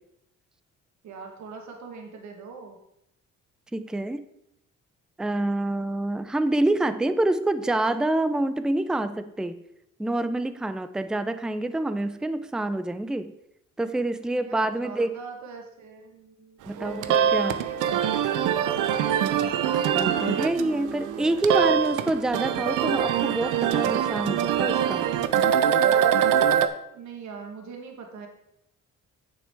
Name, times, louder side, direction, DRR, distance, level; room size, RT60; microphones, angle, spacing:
voice 1, 1.0-2.8 14.3-19.8 20.6-21.8 26.9-28.3, right 5 dB, 70° right, 3 dB, 1.4 m, -43 dB
voice 2, 3.7-4.2 5.2-9.6 10.0-13.3 13.8-15.2 16.6-17.6 19.9-25.0, right 2 dB, ahead, 11 dB, 0.4 m, -27 dB
sound 1, 16.7-26.7, right 9 dB, 85° right, 0.6 m, -24 dB
8.8 x 6.9 x 3.5 m, 0.80 s
cardioid pair, 90°, 30 cm